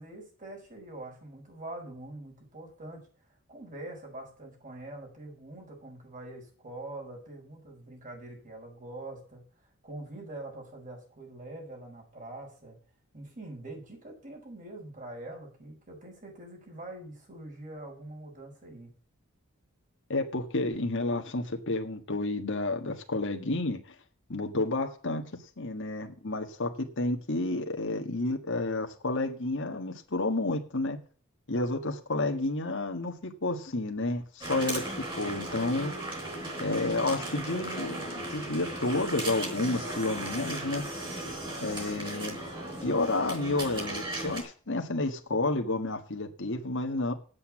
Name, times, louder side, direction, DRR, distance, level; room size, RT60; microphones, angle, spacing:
voice 1, 0.0-3.0 3.5-9.4 9.8-12.8 13.1-18.9, right 2 dB, 40° right, -1 dB, 5.3 m, -44 dB
voice 2, 20.1-23.8 24.3-25.2 25.6-31.0 31.5-34.8 35.2-35.9 36.6-40.8 41.6-42.4 42.8-47.1, left 2 dB, 60° left, 4 dB, 1.6 m, -30 dB
sound 1, 34.4-44.4, right 1 dB, 25° right, 4.5 m, -36 dB
8.4 x 8.1 x 7.2 m, 0.41 s
head